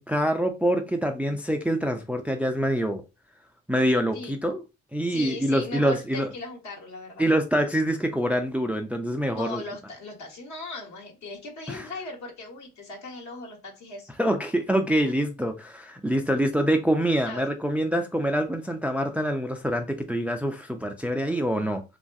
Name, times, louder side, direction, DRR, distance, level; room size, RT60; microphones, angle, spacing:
voice 1, 0.0-3.0 3.7-4.6 4.9-6.3 7.2-9.6 11.7-11.9 14.2-21.8, equal, 5° right, 0.4 m, -25 dB
voice 2, 5.1-7.3 9.3-14.1 17.2-17.5, left 2 dB, 70° left, 1.3 m, -38 dB
3.0 x 2.4 x 2.6 m
cardioid pair, 90°, 30 cm